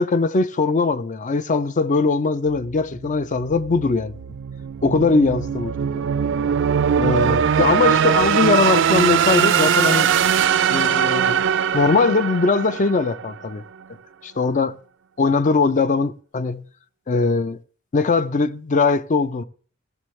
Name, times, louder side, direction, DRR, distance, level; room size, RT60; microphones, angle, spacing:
voice 1, 0.0-4.1 4.8-6.0 7.0-10.1 10.7-11.4 11.7-13.6 14.2-14.8 15.2-16.7 17.1-17.6 17.9-19.4, left 4 dB, 40° left, 0.5 m, -20 dB
sound 1, 2.5-13.5, right 8 dB, 65° right, 0.4 m, -21 dB
16.0 x 6.9 x 3.2 m
head